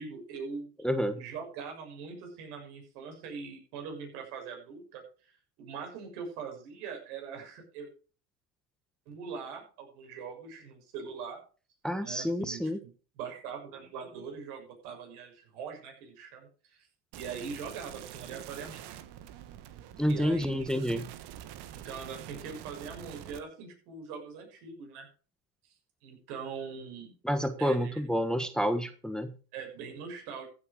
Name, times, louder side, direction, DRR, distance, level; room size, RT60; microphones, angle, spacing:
voice 1, 0.0-0.7 1.2-5.0 5.6-7.9 9.1-11.4 12.0-12.9 13.2-16.9 17.1-19.0 20.1-20.7 21.7-25.1 26.0-27.1 27.6-27.9 29.5-30.5, right 5 dB, 75° right, 2 dB, 6.9 m, -42 dB
voice 2, 0.8-1.2 11.8-12.8 20.0-21.0 27.2-29.3, equal, ahead, 10 dB, 1.3 m, -29 dB
sound 1, 17.1-23.4, right 11 dB, 60° right, 1.6 m, -46 dB
15.0 x 8.0 x 5.1 m, 0.37 s
supercardioid pair, 90°, 45 cm